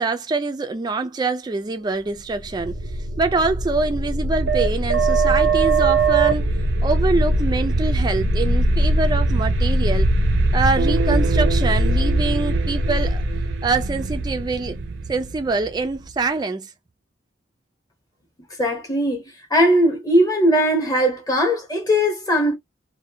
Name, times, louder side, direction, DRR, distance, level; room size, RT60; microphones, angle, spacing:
voice 1, 0.0-6.5 6.8-10.1 10.5-13.2 13.6-14.8 15.1-16.7, right 3 dB, 20° right, 0.3 m, -24 dB
sound 1, 2.4-16.1, right 2 dB, 85° right, 0.5 m, -21 dB
voice 2, 18.6-19.2 19.5-22.5, equal, 20° left, 0.8 m, -19 dB
2.6 x 2.1 x 2.7 m
head